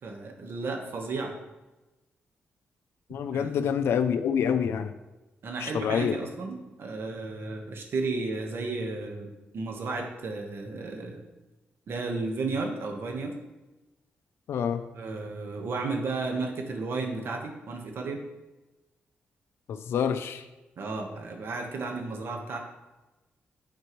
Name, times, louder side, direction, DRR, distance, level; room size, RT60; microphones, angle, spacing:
voice 1, 0.0-1.3 3.3-3.5 5.4-11.2 11.9-13.3 14.9-18.2 20.8-22.6, right 3 dB, 70° right, 3 dB, 1.2 m, -33 dB
voice 2, 3.1-4.9 5.6-6.2 14.5-14.8 19.7-20.4, left 7 dB, 80° left, 8 dB, 0.4 m, -27 dB
11.0 x 4.4 x 3.1 m, 1.1 s
cardioid pair, 75°, 4 cm